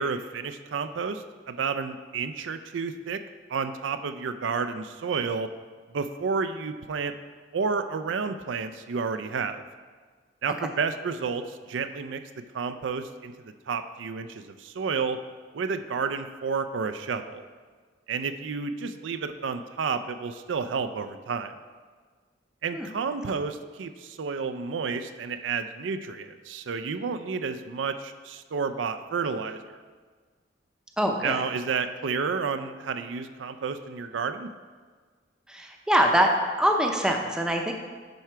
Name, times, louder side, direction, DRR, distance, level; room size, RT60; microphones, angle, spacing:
voice 1, 0.0-3.2 3.5-5.5 5.9-7.1 7.5-9.6 10.4-12.2 12.5-13.3 13.7-15.2 15.5-17.4 18.1-21.5 22.6-29.8 31.2-34.5, right 5 dB, 90° right, 9 dB, 0.5 m, -31 dB
voice 2, 31.0-31.4 35.5-36.3 36.6-37.7, equal, 5° right, 2 dB, 0.6 m, -23 dB
10.5 x 4.7 x 4.5 m, 1.5 s
head